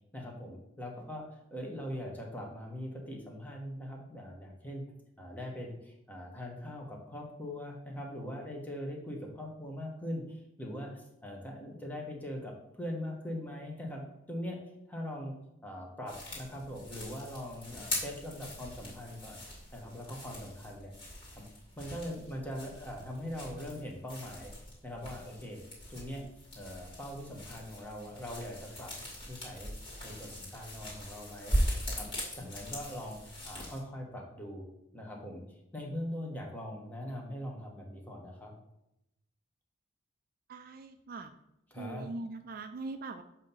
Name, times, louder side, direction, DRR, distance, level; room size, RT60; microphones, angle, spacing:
voice 1, 0.1-4.8 5.2-15.3 15.6-20.9 21.4-21.5 21.8-24.5 24.8-25.6 25.9-26.2 26.5-28.9 29.3-29.7 30.0-31.6 31.9-32.1 32.3-34.7 34.9-38.5 41.7-42.1, left 1 dB, 10° left, -1 dB, 1.1 m, -41 dB
sound 1, 16.1-33.8, equal, 25° left, 2.3 m, -40 dB
voice 2, 40.5-41.3 41.8-43.2, right 3 dB, 50° right, 8 dB, 0.4 m, -41 dB
7.4 x 2.9 x 5.4 m, 0.83 s
head